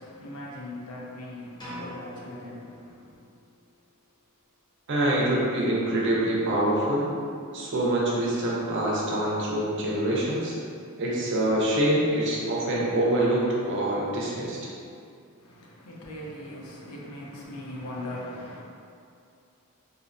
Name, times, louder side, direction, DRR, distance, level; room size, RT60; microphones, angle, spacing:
voice 1, 0.0-3.3 15.4-18.6, left 1 dB, 85° left, -4 dB, 0.5 m, -40 dB
sound 1, 1.6-3.5, equal, 20° left, 0.5 m, -43 dB
voice 2, 4.9-7.1 7.5-10.5 11.0-14.6, right 1 dB, 55° right, -5 dB, 0.5 m, -25 dB
2.6 x 2.1 x 2.5 m, 2.5 s
head